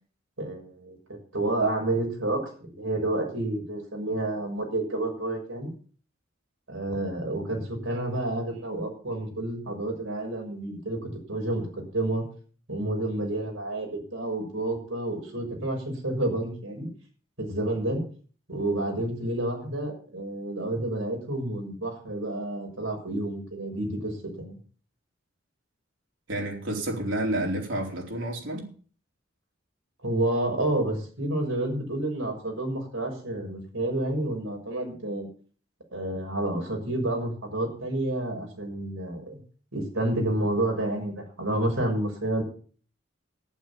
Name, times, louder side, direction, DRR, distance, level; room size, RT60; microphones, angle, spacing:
voice 1, 0.4-0.9 1.3-5.7 6.7-12.2 12.7-16.9 17.4-18.0 18.5-24.6 30.0-35.3 35.9-39.4 39.7-42.4, right 1 dB, 90° right, 1 dB, 6.7 m, -29 dB
voice 2, 26.3-28.7, right 1 dB, 75° right, 1 dB, 4.2 m, -30 dB
11.5 x 11.0 x 7.1 m, 0.42 s
head